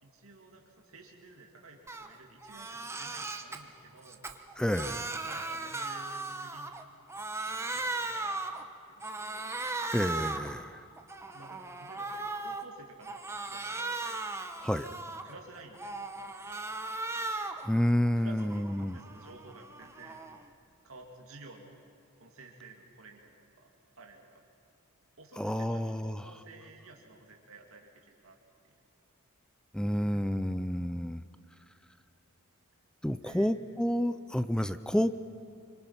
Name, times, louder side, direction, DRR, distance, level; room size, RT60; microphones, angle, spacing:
voice 1, 0.0-4.2 5.2-6.7 7.4-9.5 11.3-13.2 13.5-14.0 14.8-16.7 17.9-20.2 20.8-21.8 22.2-23.7 24.0-24.4 25.2-28.4 28.6-28.7 29.8-30.6 33.1-33.5, right 3 dB, 65° right, 0 dB, 2.6 m, -53 dB
Crying sobbing, 1.9-2.1 2.4-3.6 4.0-6.8 7.1-8.6 9.0-10.5 11.0-12.6 13.0-15.3 15.7-17.7 18.1-20.4, right 2 dB, 10° right, 1.1 m, -37 dB
voice 2, 4.6-5.2 9.9-10.8 14.6-14.9 17.6-19.0 25.4-26.2 29.7-31.2 33.0-35.1, equal, 5° left, 12 dB, 0.5 m, -29 dB
26.5 x 24.5 x 5.8 m, 2.7 s
head